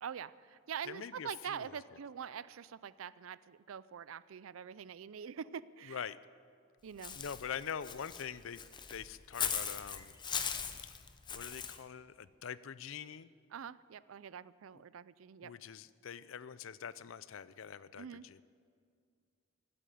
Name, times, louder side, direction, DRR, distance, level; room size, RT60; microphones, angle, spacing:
voice 1, 0.0-6.0 6.8-7.2 13.5-15.5 17.9-18.2, right 8 dB, 75° right, 18 dB, 0.4 m, -45 dB
voice 2, 0.8-1.7 5.9-6.2 7.1-8.6 8.9-10.2 11.3-13.3 15.4-18.4, left 7 dB, 70° left, 17 dB, 0.5 m, -44 dB
Walk footsteps / Bird, 7.0-11.8, left 7 dB, 20° left, 0.6 m, -39 dB
16.0 x 8.8 x 9.3 m, 2.2 s
head